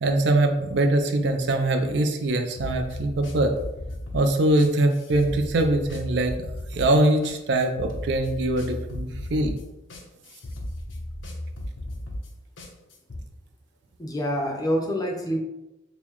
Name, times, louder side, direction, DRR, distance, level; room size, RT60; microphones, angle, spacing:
voice 1, 0.0-3.5 4.1-6.3 6.7-9.6, right 1 dB, 60° right, 5 dB, 0.4 m, -22 dB
sound 1, 2.6-13.2, left 1 dB, 75° left, 0.7 m, -35 dB
voice 2, 14.0-15.4, equal, 20° left, 1 dB, 0.5 m, -26 dB
5.4 x 2.1 x 3.0 m, 0.95 s
head